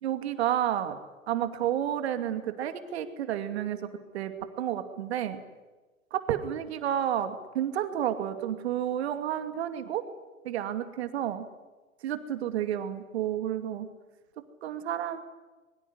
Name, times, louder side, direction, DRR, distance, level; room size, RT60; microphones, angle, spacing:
voice 1, 0.0-1.0 1.3-3.8 4.1-4.3 4.6-5.4 6.1-10.0 10.4-11.5 12.0-13.9 14.6-15.2, right 10 dB, 50° right, 9 dB, 2.6 m, -30 dB
25.0 x 23.5 x 9.9 m, 1.2 s
figure-of-eight pair, 115°, 41 cm